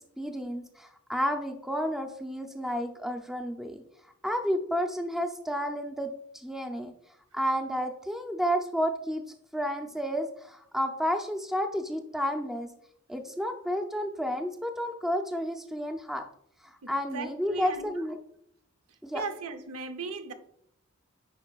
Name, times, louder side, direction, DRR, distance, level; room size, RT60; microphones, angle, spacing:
voice 1, 0.2-3.8 4.2-6.9 7.3-9.2 9.5-12.7 13.1-16.2 16.6-18.2 19.0-19.2, equal, ahead, 0.4 m, -31 dB
voice 2, 16.8-17.9 19.1-20.3, right 4 dB, 85° right, 0.7 m, -37 dB
9.9 x 4.7 x 2.3 m
head